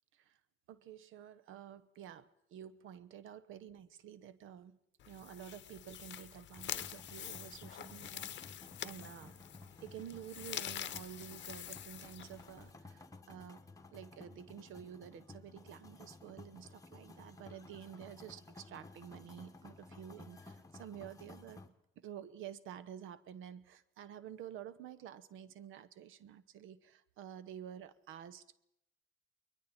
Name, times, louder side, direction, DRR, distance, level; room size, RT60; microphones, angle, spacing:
voice 1, 0.7-4.8 5.1-9.4 9.8-13.6 13.9-21.6 22.0-28.6, right 9 dB, 85° right, 16 dB, 1.0 m, -50 dB
sound 1, 5.0-12.7, left 11 dB, 65° left, 0.8 m, -46 dB
sound 2, 6.5-21.7, left 2 dB, 15° left, 1.6 m, -55 dB
29.5 x 21.5 x 4.3 m, 0.82 s
cardioid pair, 90°, 20 cm